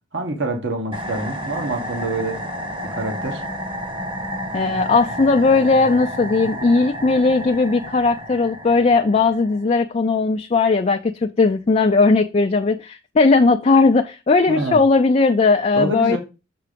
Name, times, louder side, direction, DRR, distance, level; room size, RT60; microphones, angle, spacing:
voice 1, 0.1-2.4 2.9-3.4 14.5-14.8 15.7-16.2, right 2 dB, 60° right, 1.3 m, -26 dB
sound 1, 0.9-9.7, equal, 25° right, 1.1 m, -31 dB
voice 2, 4.5-16.2, left 3 dB, 35° left, 0.4 m, -17 dB
6.7 x 4.6 x 5.2 m
head